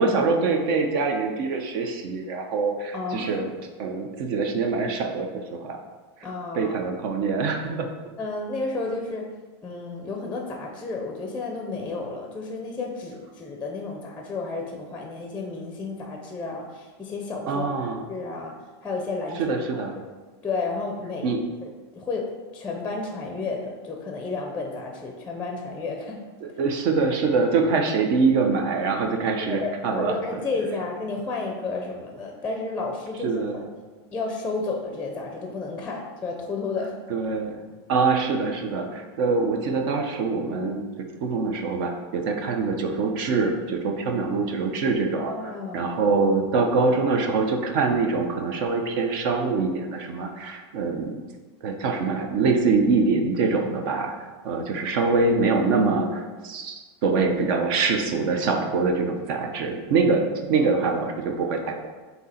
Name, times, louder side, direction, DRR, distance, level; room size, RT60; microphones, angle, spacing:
voice 1, 0.0-3.5 3.8-5.8 6.5-7.9 17.5-18.0 19.4-20.0 21.2-21.4 26.6-30.4 33.2-33.6 37.1-37.6 37.9-40.8 41.2-45.3 45.7-51.2 51.6-61.9, right 4 dB, 50° right, 3 dB, 0.7 m, -24 dB
voice 2, 2.9-3.4 6.2-6.7 8.2-9.3 9.6-18.5 18.8-20.1 20.4-22.3 22.5-26.2 29.5-33.3 34.1-36.9 45.2-45.9 60.5-60.7, left 3 dB, 10° left, 2 dB, 0.6 m, -32 dB
7.9 x 2.8 x 4.3 m, 1.3 s
supercardioid pair, 150°, 14 cm